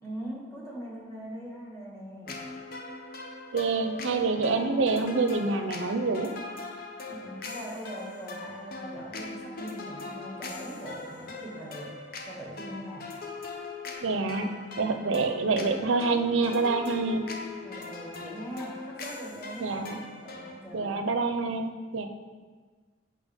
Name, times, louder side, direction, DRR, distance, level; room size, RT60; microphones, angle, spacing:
voice 1, 0.0-2.4 7.1-11.9 12.2-13.0 14.8-15.0 17.6-20.0 20.2-21.1, equal, 15° left, -5 dB, 1.9 m, -41 dB
sound 1, 2.3-20.6, left 3 dB, 50° left, 0.7 m, -40 dB
voice 2, 3.5-6.4 14.0-17.2 19.6-20.0 20.7-22.1, right 3 dB, 90° right, 7 dB, 0.6 m, -27 dB
8.2 x 5.7 x 3.6 m, 1.4 s
head